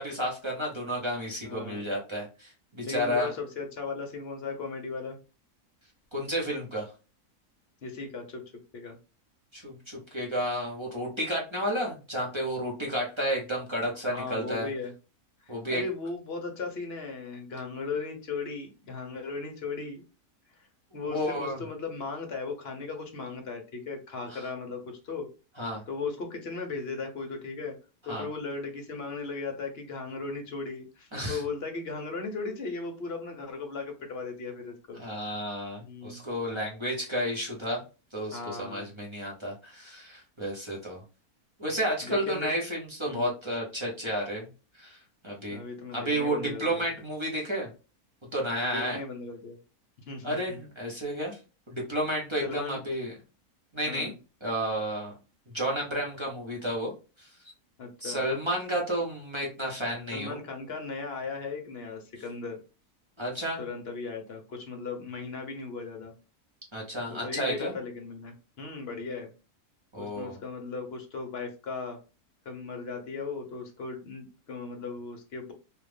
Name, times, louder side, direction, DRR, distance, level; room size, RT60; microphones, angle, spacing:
voice 1, 0.0-3.3 6.1-6.9 9.5-14.7 15.5-15.8 21.0-21.6 24.3-24.5 25.6-25.8 28.1-28.3 31.1-31.4 34.9-37.8 38.1-41.0 41.6-44.5 44.7-45.6 45.9-47.7 48.3-49.0 50.2-51.4 51.7-53.1 53.7-54.1 54.4-55.1 55.5-56.9 57.2-57.3 58.0-60.4 63.2-63.6 66.7-67.8 69.9-70.4, equal, 20° right, -3 dB, 0.9 m, -31 dB
voice 2, 1.4-1.9 2.8-5.2 7.8-8.4 8.7-9.0 14.1-14.9 15.4-20.0 20.9-25.3 25.9-27.7 28.0-35.0 35.8-36.2 38.3-38.9 42.0-42.5 43.1-43.3 45.5-46.9 48.6-49.6 50.1-50.6 52.4-52.8 53.9-54.1 57.8-58.2 60.1-62.6 63.6-66.1 67.1-69.3 70.0-72.0 72.4-75.5, left 4 dB, 50° left, 3 dB, 0.9 m, -37 dB
3.1 x 2.5 x 3.3 m, 0.32 s
omnidirectional pair, 1.6 m